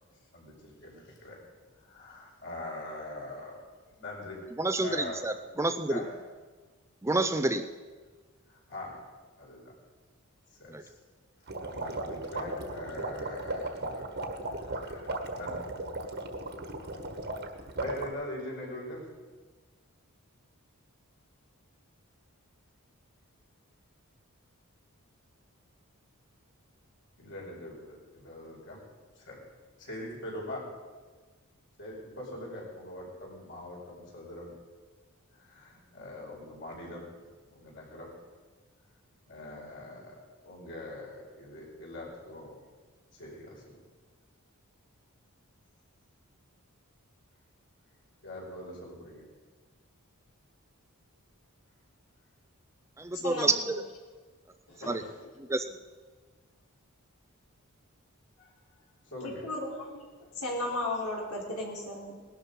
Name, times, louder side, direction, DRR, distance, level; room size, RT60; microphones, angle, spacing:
voice 1, 0.1-1.4 1.8-3.6 4.0-4.4 4.8-5.2 5.9-6.1 8.5-9.0 9.4-9.7 10.5-10.9 11.6-14.0 14.4-15.6 16.8-16.9 17.8-19.1 27.2-28.8 29.1-29.4 29.8-30.7 31.8-34.5 35.3-37.1 37.5-38.1 39.3-40.2 40.4-42.6 43.1-43.7 48.2-49.2 54.8-55.1 58.4-59.4, left 1 dB, 55° left, -2 dB, 5.1 m, -42 dB
voice 2, 4.6-6.0 7.0-7.7 10.7-10.8 53.0-53.8 54.9-55.0 55.5-55.6, right 2 dB, 15° right, 9 dB, 0.5 m, -29 dB
sound 1, 11.5-18.1, right 2 dB, 50° right, 1.5 m, -36 dB
voice 3, 59.4-60.1 60.3-62.2, left 2 dB, 80° left, -2 dB, 3.9 m, -35 dB
19.0 x 12.0 x 5.3 m, 1.4 s
head